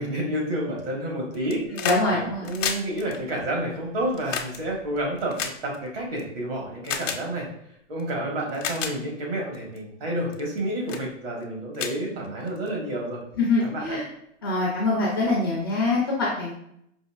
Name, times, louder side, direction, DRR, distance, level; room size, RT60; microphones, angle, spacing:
voice 1, 0.0-7.5 7.9-13.2 13.6-14.0, right 1 dB, 50° right, -2 dB, 1.5 m, -30 dB
sound 1, 1.3-2.0 2.3-6.2 6.8-7.2 8.0-8.1 8.5-8.9 9.5-9.8 10.3-10.6 10.9-11.1 11.4-11.5 11.7-12.7 13.8-13.9, left 7 dB, 85° left, 0.7 m, -32 dB
voice 2, 1.8-2.5 13.4-14.0 14.4-16.5, left 3 dB, 20° left, -6 dB, 0.3 m, -24 dB
5.2 x 2.8 x 2.3 m, 0.74 s
supercardioid pair, 170°, 37 cm